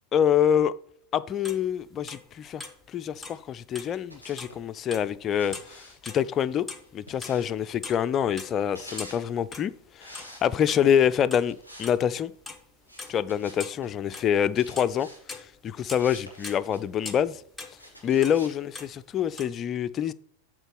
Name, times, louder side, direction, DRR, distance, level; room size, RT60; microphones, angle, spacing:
voice 1, 0.1-0.7 1.1-2.6 2.9-6.7 6.9-12.3 13.1-17.4 18.0-20.1, left 9 dB, 30° left, 0.3 m, -26 dB
sound 1, 1.4-2.9 3.1-3.5 3.7-4.6 4.9-5.3 5.5-6.9 7.2-9.9 10.1-10.3 10.6-12.0 12.5-12.7 13.0-14.5 14.8-14.9 15.2-16.1 16.4-18.4 18.7-19.4, left 3 dB, 5° left, 0.8 m, -41 dB
sound 2, 3.9-4.6 5.4-7.7 8.5-9.3 10.0-10.8 11.5-11.9 12.2-12.4 12.9-13.9 14.5-15.2 16.0-16.8 17.8-18.6, equal, 90° right, 2.0 m, -48 dB
8.0 x 3.7 x 5.9 m
figure-of-eight pair, 90°, 0 cm